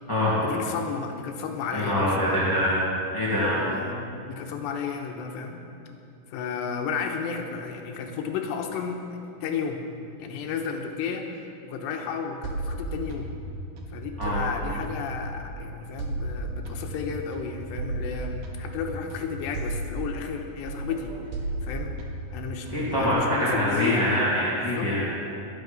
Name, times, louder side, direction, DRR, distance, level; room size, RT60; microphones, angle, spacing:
voice 1, 0.4-2.4 3.5-5.6 6.3-9.8 10.2-13.3 13.9-21.2 21.6-22.0 22.3-24.2 24.6-24.9, left 6 dB, 80° left, 3 dB, 3.1 m, -33 dB
voice 2, 1.7-2.8 3.1-3.7 14.2-14.4 22.7-25.0, left 1 dB, 10° left, -8 dB, 1.1 m, -24 dB
sound 1, 12.4-15.5 16.0-20.4 20.7-23.1, right 2 dB, 60° right, 2.4 m, -34 dB
21.0 x 9.5 x 5.4 m, 2.6 s
omnidirectional pair, 5.2 m